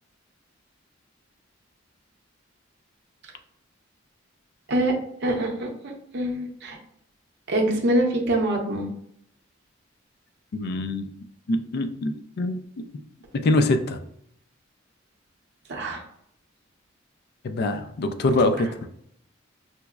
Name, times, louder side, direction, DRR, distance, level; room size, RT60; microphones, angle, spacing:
voice 1, 5.2-6.8 7.5-8.9 15.7-16.0, right 1 dB, 60° right, 1 dB, 0.7 m, -25 dB
voice 2, 10.5-11.1 11.5-12.6 13.4-14.0 17.4-18.9, left 2 dB, 55° left, 8 dB, 0.3 m, -24 dB
5.6 x 2.0 x 2.3 m, 0.69 s
head